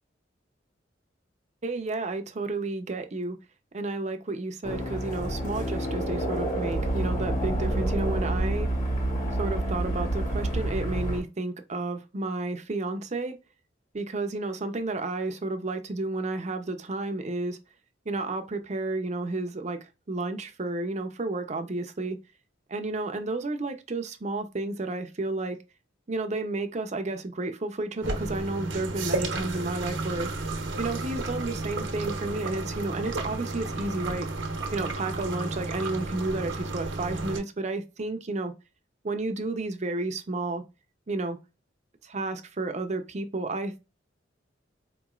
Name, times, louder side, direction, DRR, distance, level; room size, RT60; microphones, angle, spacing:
voice 1, 1.6-3.4 3.7-8.7 9.4-13.4 13.9-17.6 18.1-19.8 20.1-22.2 22.7-25.6 26.1-30.3 30.8-34.3 34.7-38.5 39.0-40.6 41.1-41.4 42.0-43.8, right 2 dB, 35° right, 0.6 m, -31 dB
sound 1, 4.6-11.2, right 1 dB, 40° left, 1.5 m, -28 dB
sound 2, 28.0-37.4, right 2 dB, 75° right, 0.9 m, -32 dB
4.5 x 3.0 x 2.3 m
head